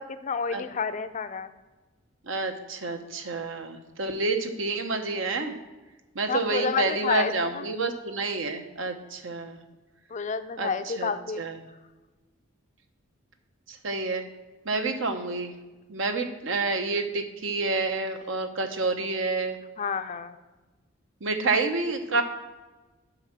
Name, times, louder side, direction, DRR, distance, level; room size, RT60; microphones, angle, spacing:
voice 1, 0.0-1.5 6.3-7.6 10.1-11.4 19.8-20.3, left 5 dB, 35° left, 10 dB, 0.4 m, -30 dB
voice 2, 2.2-5.6 6.1-9.6 10.6-11.1 11.4-11.6 13.7-14.2 14.6-15.5 15.9-19.6 21.2-22.2, right 3 dB, 70° right, 6 dB, 0.9 m, -29 dB
8.0 x 5.5 x 5.9 m, 1.2 s
head